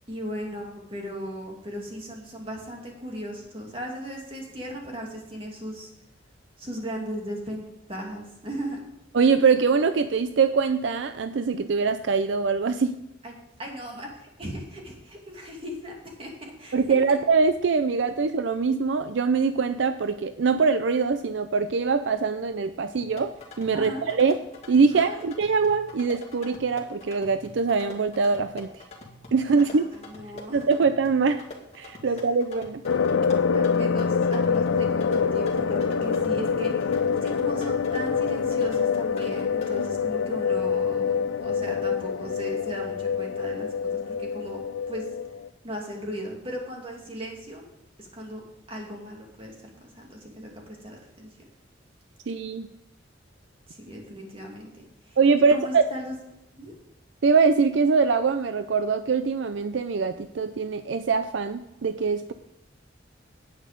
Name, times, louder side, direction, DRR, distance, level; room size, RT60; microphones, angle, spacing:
voice 1, 0.1-5.9 6.6-8.8 13.2-13.3 13.6-17.2 23.7-24.0 24.9-25.2 29.5-30.6 32.0-32.1 33.5-44.6 44.9-45.1 45.6-47.6 48.0-48.4 48.7-51.3 53.7-55.2 55.5-56.1 56.6-56.7, equal, 30° right, 0 dB, 2.5 m, -37 dB
voice 2, 9.1-12.9 16.7-23.3 23.6-24.4 24.7-28.8 29.3-29.9 30.5-31.4 31.7-32.8 52.3-52.7 55.2-55.8 57.2-62.3, right 5 dB, 70° right, 10 dB, 0.5 m, -23 dB
sound 1, 22.9-39.9, left 2 dB, 35° left, 2.2 m, -45 dB
sound 2, 32.9-45.5, left 6 dB, 90° left, 0.5 m, -25 dB
10.0 x 8.9 x 5.1 m, 0.88 s
head